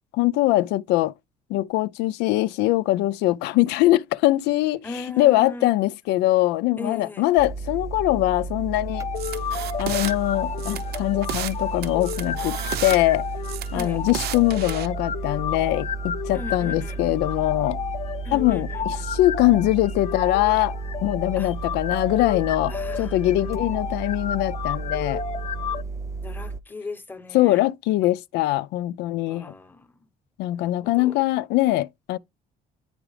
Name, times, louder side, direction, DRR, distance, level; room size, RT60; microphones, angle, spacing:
voice 1, 0.1-1.1 1.5-9.1 9.8-13.3 13.7-17.8 18.3-20.8 21.0-25.2 27.3-29.5 30.4-32.2, left 16 dB, 90° left, 0.4 m, -22 dB
voice 2, 4.8-5.7 6.8-7.2 13.7-14.0 16.3-17.0 18.2-19.1 21.4-21.5 22.7-23.2 26.2-27.6 29.3-29.9 31.0-31.2, left 3 dB, 10° left, 0.9 m, -37 dB
sound 1, 7.4-26.6, right 4 dB, 20° right, 0.3 m, -33 dB
sound 2, 8.9-25.8, left 8 dB, 40° left, 0.8 m, -33 dB
sound 3, 9.2-10.1 10.6-11.6 11.8-13.0 13.4-14.9, right 11 dB, 70° right, 0.9 m, -32 dB
9.7 x 4.9 x 3.2 m
cardioid pair, 110°, 17 cm